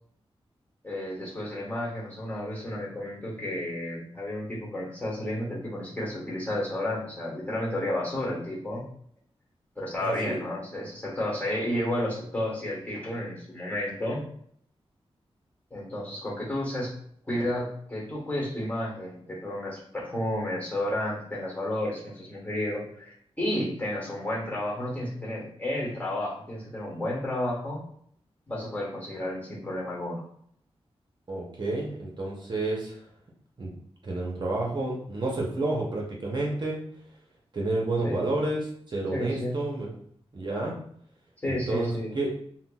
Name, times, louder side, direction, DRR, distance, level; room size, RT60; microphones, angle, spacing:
voice 1, 0.8-8.9 9.8-14.3 15.7-16.9 17.3-27.8 28.5-30.2 38.0-38.3 39.1-39.6 41.4-42.1, left 1 dB, 15° left, -5 dB, 1.3 m, -32 dB
voice 2, 10.0-10.4 31.3-33.0 33.6-33.7 34.0-36.8 37.5-39.9 40.3-40.8 41.5-42.3, right 2 dB, 45° right, -2 dB, 0.8 m, -30 dB
5.6 x 2.1 x 2.3 m, 0.65 s
wide cardioid pair, 105°, 10 cm